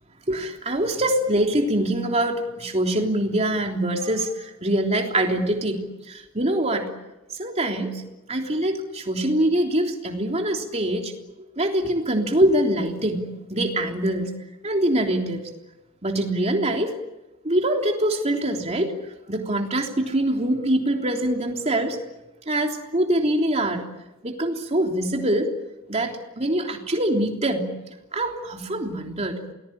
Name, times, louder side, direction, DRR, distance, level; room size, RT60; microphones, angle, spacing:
voice 1, 0.3-5.8 6.1-6.9 7.4-8.0 8.3-11.1 11.6-14.3 14.6-15.4 16.0-16.9 17.4-18.9 19.3-22.0 22.5-23.8 24.2-25.5 25.9-27.7 28.1-29.4, right 1 dB, 30° right, 2 dB, 3.4 m, -24 dB
28.5 x 20.0 x 8.8 m, 0.98 s
head